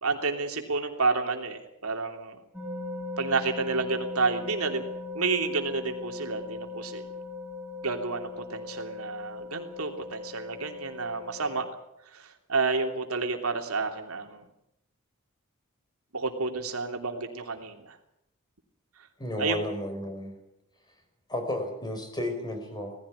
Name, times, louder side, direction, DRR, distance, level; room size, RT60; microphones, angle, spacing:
voice 1, 0.0-2.4 3.2-4.9 5.1-7.0 7.8-11.7 12.1-14.4 16.1-18.0 19.4-19.6, right 4 dB, 80° right, 4 dB, 3.1 m, -30 dB
sound 1, 2.5-11.7, left 3 dB, 5° right, 3.6 m, -39 dB
voice 2, 19.2-20.4 21.3-23.0, left 1 dB, 20° left, 5 dB, 4.9 m, -33 dB
19.5 x 15.5 x 9.9 m, 0.84 s
head